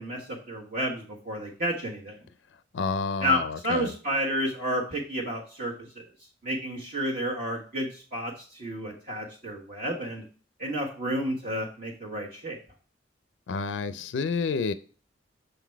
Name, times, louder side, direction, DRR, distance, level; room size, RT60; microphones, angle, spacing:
voice 1, 0.0-2.2 3.2-6.0 6.4-10.2 10.6-12.6, equal, 50° right, 1.4 m, -31 dB
voice 2, 2.7-3.4 3.7-3.9 13.5-14.7, left 4 dB, 80° left, 0.4 m, -29 dB
6.7 x 3.9 x 4.5 m
head